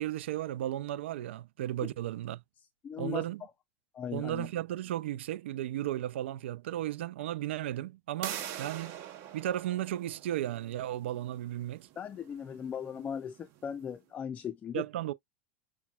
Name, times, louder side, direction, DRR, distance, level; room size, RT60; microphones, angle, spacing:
voice 1, 0.0-2.4 3.0-3.4 4.1-9.0 9.3-11.9 14.7-15.1, right 13 dB, 75° right, 0.4 m, -35 dB
voice 2, 2.8-3.3 3.9-4.5 12.0-14.8, left 8 dB, 25° left, 0.4 m, -38 dB
sound 1, 8.2-13.8, right 10 dB, 55° right, 1.2 m, -45 dB
5.8 x 2.1 x 2.3 m
hypercardioid pair, 105°, 6 cm